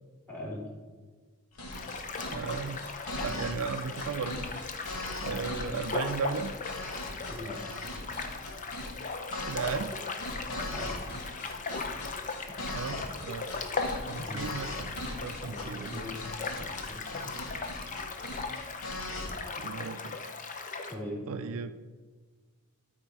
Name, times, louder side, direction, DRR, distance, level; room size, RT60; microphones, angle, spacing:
voice 1, 0.3-0.7 7.3-7.6 10.7-11.2 14.2-14.4 15.4-17.3 20.9-21.2, left 1 dB, 10° left, -3 dB, 2.5 m, -41 dB
sound 1, 1.5-19.3, left 1 dB, 85° left, 1.5 m, -40 dB
sound 2, 1.7-21.0, left 4 dB, 35° left, 0.7 m, -38 dB
voice 2, 2.3-2.9 3.2-4.4 4.8-4.9 5.2-6.5 9.4-9.9 12.7-14.9 15.2-16.1 19.6-20.2 21.3-21.7, right 5 dB, 65° right, 10 dB, 0.4 m, -35 dB
12.5 x 4.3 x 4.6 m, 1.5 s
head